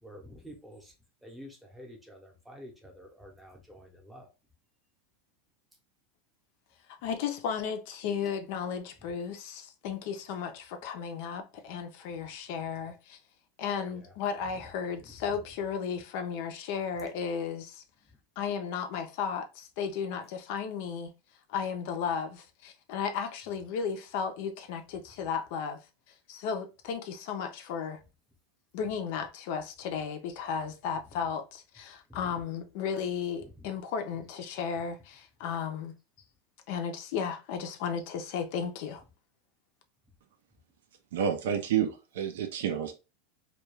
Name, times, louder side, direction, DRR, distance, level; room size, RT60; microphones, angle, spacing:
voice 1, 0.0-0.9 1.2-4.3 13.9-14.1 14.5-15.5 17.9-18.2 32.1-32.4 33.4-33.7, equal, ahead, 0.7 m, -50 dB
voice 2, 7.0-13.2 13.6-17.8 18.4-21.1 21.5-25.8 26.3-28.0 28.7-35.9 36.7-39.0, left 6 dB, 55° left, 0.4 m, -34 dB
voice 3, 41.1-42.9, right 8 dB, 85° right, 0.4 m, -29 dB
2.3 x 2.2 x 3.1 m
supercardioid pair, 160°, 0 cm